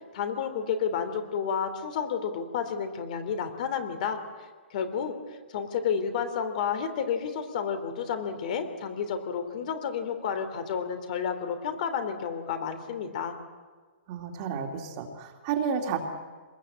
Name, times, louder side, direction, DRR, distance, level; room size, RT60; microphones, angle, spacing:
voice 1, 0.1-13.3, left 7 dB, 40° left, 8 dB, 2.9 m, -31 dB
voice 2, 14.1-16.0, right 7 dB, 30° right, 3 dB, 2.6 m, -31 dB
26.0 x 20.5 x 8.7 m, 1.5 s
hypercardioid pair, 170°, 6 cm